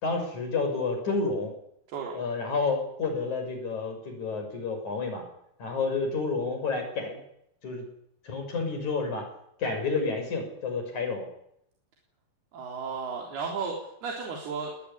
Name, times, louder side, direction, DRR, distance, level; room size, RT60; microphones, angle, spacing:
voice 1, 0.0-1.5 2.1-5.2 5.6-7.2 7.6-7.9 8.2-9.3 9.6-11.3, left 4 dB, 50° left, 5 dB, 7.2 m, -30 dB
voice 2, 1.9-2.2 12.5-14.7, right 5 dB, 85° right, 0 dB, 5.5 m, -34 dB
20.5 x 20.5 x 10.0 m, 0.76 s
omnidirectional pair, 4.4 m